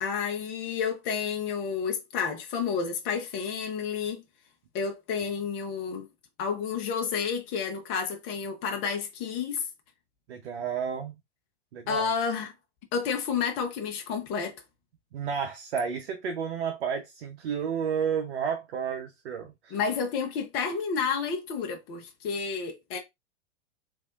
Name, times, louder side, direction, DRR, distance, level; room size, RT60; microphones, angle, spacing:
voice 1, 0.0-4.2 4.7-6.1 6.4-9.7 11.9-12.5 12.9-14.6 19.7-23.0, left 6 dB, 35° left, 0.8 m, -30 dB
voice 2, 10.3-11.1 11.7-12.1 15.1-19.8, right 7 dB, 60° right, 0.8 m, -31 dB
3.3 x 2.7 x 2.4 m
figure-of-eight pair, 95°, 34 cm